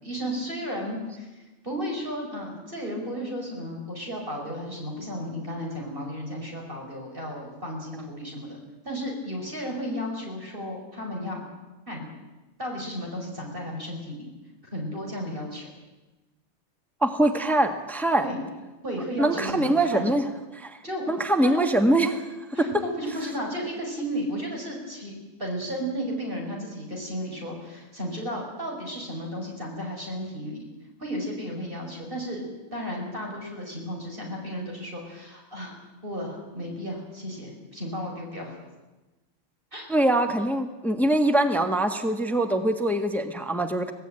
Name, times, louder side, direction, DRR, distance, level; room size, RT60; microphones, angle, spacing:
voice 1, 0.0-8.6 8.8-11.5 11.9-12.1 12.6-14.3 14.6-15.7 18.2-18.4 18.8-20.1 20.8-21.0 21.4-21.6 22.5-25.1 25.4-30.7 31.0-32.4 32.7-35.8 36.0-38.6 39.7-39.9, equal, 45° right, 0 dB, 5.5 m, -34 dB
voice 2, 17.0-18.3 19.2-20.2 20.5-20.8 21.1-22.3 22.6-22.7 39.9-43.9, right 1 dB, ahead, 6 dB, 1.5 m, -23 dB
25.0 x 17.5 x 9.0 m, 1.1 s
omnidirectional pair, 1.3 m